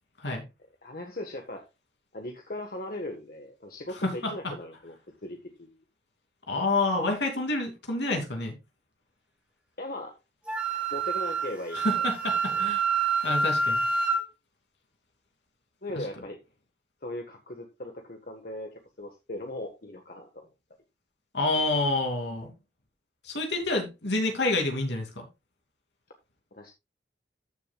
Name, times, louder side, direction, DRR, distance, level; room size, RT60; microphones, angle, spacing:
voice 1, 0.8-1.6 2.1-4.9 5.2-5.8 9.8-10.1 10.9-12.1 15.8-16.4 17.0-20.5 26.5-26.7, left 1 dB, 50° left, 3 dB, 1.5 m, -38 dB
voice 2, 4.0-4.3 6.5-8.5 11.7-12.9 13.2-13.8 15.9-16.1 21.3-22.5 23.2-25.3, left 2 dB, 70° left, 3 dB, 2.9 m, -28 dB
Wind instrument woodwind instrument, 10.5-14.2, right 4 dB, 5° right, 2.0 m, -27 dB
14.5 x 6.7 x 2.4 m, 0.24 s
head